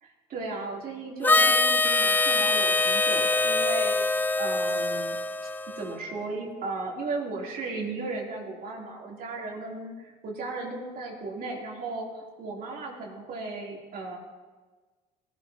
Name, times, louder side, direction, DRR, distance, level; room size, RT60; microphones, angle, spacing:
voice 1, 0.0-5.2 5.8-14.2, right 3 dB, 60° right, -2 dB, 3.6 m, -35 dB
Harmonica, 1.2-6.0, left 3 dB, 10° left, 0.4 m, -24 dB
19.0 x 12.0 x 3.0 m, 1.3 s
cardioid pair, 110°, 17 cm